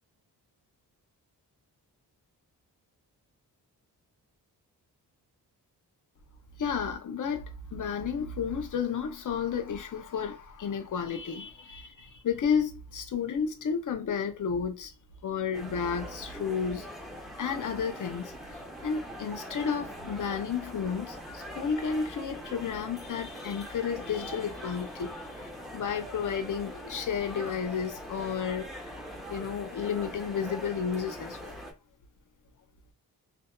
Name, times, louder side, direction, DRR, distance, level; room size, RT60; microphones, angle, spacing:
voice 1, 6.6-14.9 15.2-16.9 17.4-28.9 29.3-31.6, left 6 dB, 50° left, 0.6 m, -32 dB
sound 1, 15.5-31.7, equal, ahead, 0.9 m, -42 dB
2.7 x 2.1 x 2.2 m
cardioid pair, 50°, 40 cm